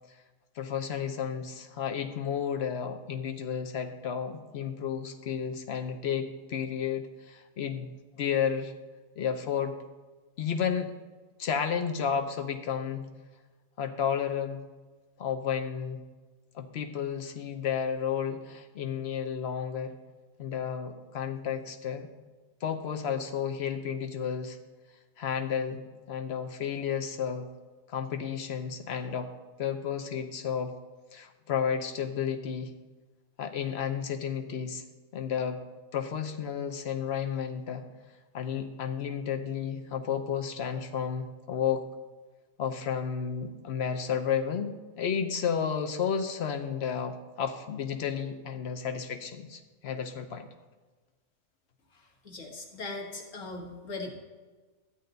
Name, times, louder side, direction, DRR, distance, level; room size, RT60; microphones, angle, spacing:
voice 1, 0.6-8.7 9.2-9.7 10.4-10.9 11.4-13.1 13.8-14.7 15.2-16.0 16.5-20.0 20.4-22.1 22.6-24.6 25.2-27.5 27.9-29.3 29.6-30.7 31.1-32.7 33.4-34.8 35.1-35.6 35.9-37.8 38.3-41.8 42.6-50.5, left 7 dB, 55° left, 6 dB, 1.0 m, -32 dB
voice 2, 52.2-54.1, left 3 dB, 75° left, 1 dB, 1.9 m, -39 dB
13.0 x 8.2 x 3.9 m, 1.3 s
omnidirectional pair, 1.4 m